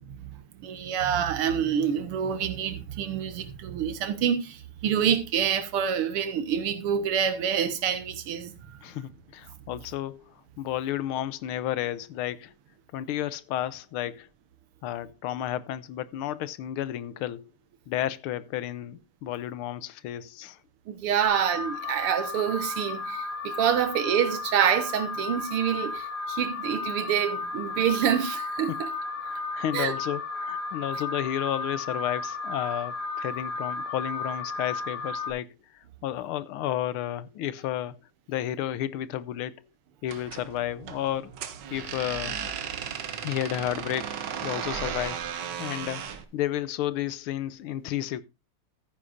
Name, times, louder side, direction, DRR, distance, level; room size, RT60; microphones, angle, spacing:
voice 1, 0.1-8.8 20.9-28.9 29.7-29.9, right 8 dB, 85° right, 2.1 m, -27 dB
voice 2, 8.8-12.5 12.9-14.3 14.8-17.4 17.9-20.6 28.7-28.8 29.2-35.5 36.0-38.0 38.3-39.6 40.0-41.3 41.7-42.4 43.2-45.2 45.6-48.2, left 12 dB, 75° left, 1.5 m, -32 dB
Alarm, 21.2-35.3, left 3 dB, 40° left, 3.6 m, -34 dB
sound 1, 40.0-46.2, right 8 dB, 60° right, 1.6 m, -35 dB
14.0 x 9.8 x 2.5 m
omnidirectional pair, 2.4 m